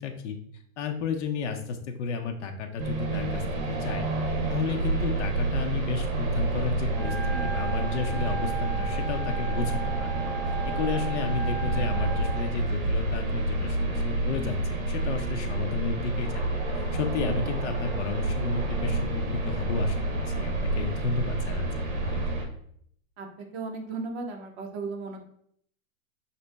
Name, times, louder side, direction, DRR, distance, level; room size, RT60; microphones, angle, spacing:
voice 1, 0.0-0.4 0.8-3.4 3.7-4.1 4.5-20.0 20.4-21.6 21.9-22.4, left 5 dB, 55° left, 5 dB, 0.7 m, -33 dB
sound 1, 2.8-22.4, right 2 dB, 65° right, 1.1 m, -29 dB
Wind instrument woodwind instrument, 6.9-12.5, right 6 dB, ahead, 1.7 m, -36 dB
voice 2, 23.5-25.2, right 3 dB, 50° right, 3 dB, 0.9 m, -35 dB
5.1 x 2.7 x 3.4 m, 0.67 s
supercardioid pair, 165°, 43 cm